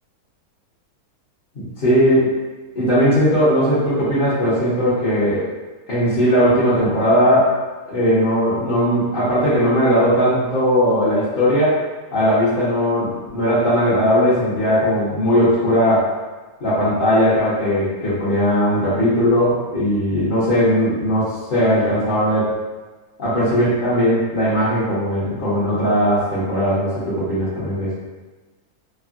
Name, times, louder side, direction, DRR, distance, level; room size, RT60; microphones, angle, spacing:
voice 1, 1.8-2.3 2.7-5.5 5.9-7.6 7.9-11.8 12.1-16.1 16.6-22.5 23.2-27.9, equal, 45° left, -12 dB, 0.8 m, -18 dB
3.3 x 2.1 x 2.4 m, 1.3 s
omnidirectional pair, 1.6 m